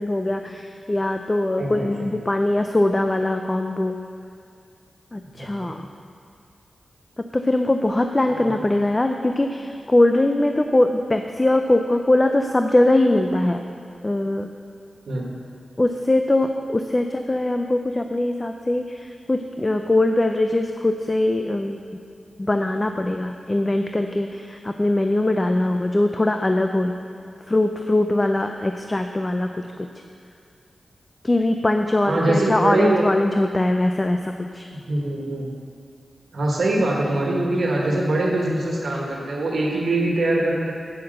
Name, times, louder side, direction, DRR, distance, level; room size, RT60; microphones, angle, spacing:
voice 1, 0.0-4.0 5.1-5.8 7.2-13.6 14.0-14.5 15.8-21.8 22.4-26.9 27.5-29.9 31.2-34.7, left 1 dB, 25° left, 5 dB, 0.5 m, -21 dB
voice 2, 1.6-2.1 5.4-5.7 8.4-8.5 15.1-15.2 32.1-33.1 34.7-35.5 36.3-40.7, right 2 dB, 75° right, -2 dB, 1.7 m, -23 dB
8.7 x 8.4 x 6.6 m, 2.3 s
wide cardioid pair, 75°, 0 cm